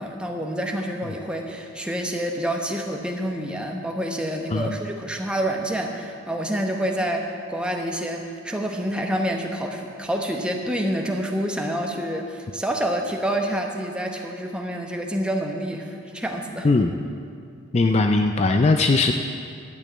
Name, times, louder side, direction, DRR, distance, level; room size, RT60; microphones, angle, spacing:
voice 1, 0.0-16.7, equal, 5° right, 2 dB, 0.9 m, -27 dB
voice 2, 17.7-19.1, left 3 dB, 30° left, 6 dB, 0.4 m, -19 dB
12.0 x 6.3 x 9.0 m, 2.4 s
head